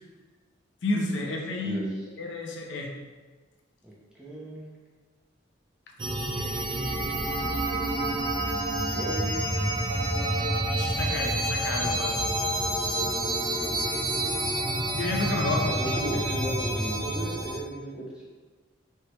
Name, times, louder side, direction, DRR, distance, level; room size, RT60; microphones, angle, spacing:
voice 1, 0.8-1.8 2.2-2.9 10.7-12.3 15.0-16.0, left 2 dB, 70° left, 0 dB, 0.6 m, -30 dB
voice 2, 3.8-4.8 8.9-9.4 15.6-18.3, right 1 dB, 5° right, -6 dB, 0.8 m, -35 dB
sound 1, 6.0-17.6, right 1 dB, 25° right, 0.4 m, -28 dB
4.5 x 3.3 x 3.0 m, 1.3 s
head